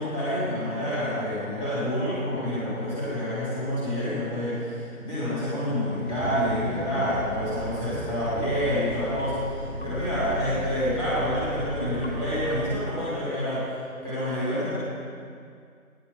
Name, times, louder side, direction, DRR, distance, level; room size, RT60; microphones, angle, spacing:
voice 1, 0.0-13.7 14.0-14.8, equal, 10° left, -12 dB, 3.3 m, -28 dB
Bus, 6.0-12.8, equal, 45° right, 2.2 m, -36 dB
sound 1, 6.1-6.6 6.9-7.2 7.9-8.4 8.8-9.0 9.8-10.2 10.6-11.0 11.7-12.1 12.5-12.8, left 3 dB, 50° left, 2.1 m, -38 dB
19.5 x 7.1 x 5.8 m, 2.2 s
figure-of-eight pair, 155°, 42 cm